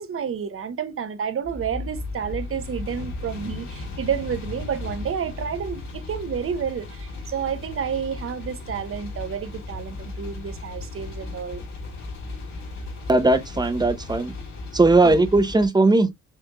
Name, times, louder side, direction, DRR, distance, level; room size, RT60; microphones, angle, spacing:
voice 1, 0.0-11.6 15.0-15.2, right 7 dB, 45° right, 1.1 m, -30 dB
sound 1, 1.4-15.7, left 3 dB, 65° left, 3.2 m, -36 dB
voice 2, 13.1-14.3 14.7-16.1, right 2 dB, 15° right, 0.9 m, -18 dB
6.6 x 3.4 x 2.3 m
cardioid pair, 90°, 30 cm